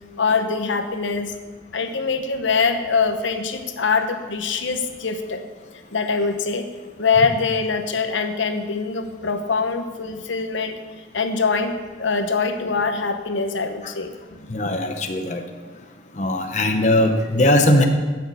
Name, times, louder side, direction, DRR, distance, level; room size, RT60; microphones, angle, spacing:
voice 1, 0.2-1.3 1.7-5.4 5.9-6.7 7.0-10.8 11.1-14.1 14.4-14.5, left 4 dB, 75° left, 7 dB, 0.9 m, -23 dB
voice 2, 14.5-15.4 16.2-17.8, left 1 dB, 35° left, 5 dB, 0.8 m, -19 dB
12.5 x 6.5 x 8.3 m, 1.4 s
head